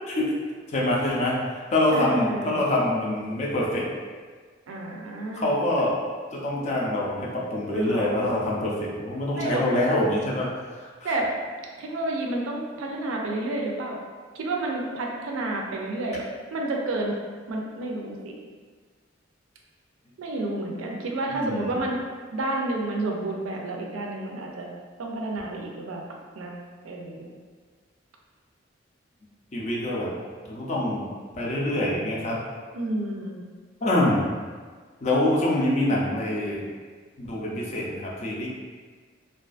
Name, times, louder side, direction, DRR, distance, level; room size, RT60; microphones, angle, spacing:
voice 1, 0.7-1.4 1.7-3.9 5.3-6.0 6.3-11.1 21.3-21.7 29.5-30.1 30.4-31.1 31.3-32.4 33.8-34.3 35.0-36.6 37.2-38.5, left 1 dB, 35° left, -4 dB, 0.4 m, -25 dB
voice 2, 1.9-2.7 4.7-5.5 7.7-8.3 9.4-9.6 11.0-11.3 11.8-14.0 14.3-16.2 16.5-17.2 17.5-18.4 20.2-22.0 22.3-24.7 25.0-26.0 26.4-26.5 26.8-27.3 32.7-33.4, right 2 dB, 85° right, 0 dB, 0.4 m, -30 dB
2.4 x 2.3 x 2.4 m, 1.5 s
head